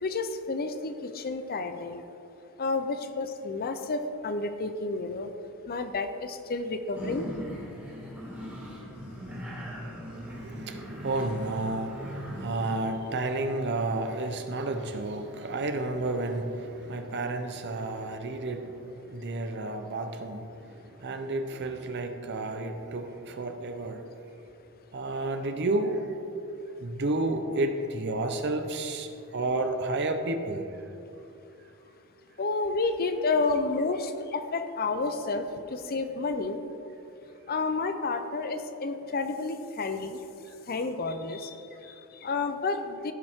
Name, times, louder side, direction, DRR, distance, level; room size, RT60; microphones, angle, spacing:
voice 1, 0.0-2.0 2.6-5.3 5.7-7.3 32.4-36.6 37.5-40.2 40.7-43.1, left 3 dB, 45° left, 8 dB, 0.6 m, -30 dB
sound 1, 6.9-12.4, equal, 5° right, 2.2 m, -39 dB
voice 2, 10.2-20.6 21.0-24.1 24.9-26.2 26.8-30.6, right 2 dB, 50° right, 7 dB, 0.7 m, -31 dB
15.0 x 5.3 x 3.6 m, 2.8 s
head